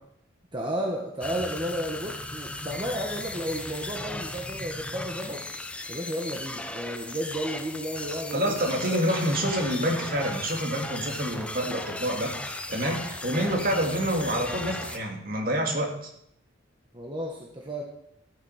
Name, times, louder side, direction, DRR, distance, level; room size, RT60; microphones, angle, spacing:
voice 1, 0.5-5.4 5.9-8.8 16.9-17.8, equal, 25° right, 0 dB, 1.2 m, -33 dB
sound 1, 1.2-15.0, left 2 dB, 5° left, 0.6 m, -36 dB
voice 2, 8.3-16.1, equal, 45° right, 2 dB, 2.2 m, -27 dB
13.5 x 8.2 x 5.7 m, 0.73 s
head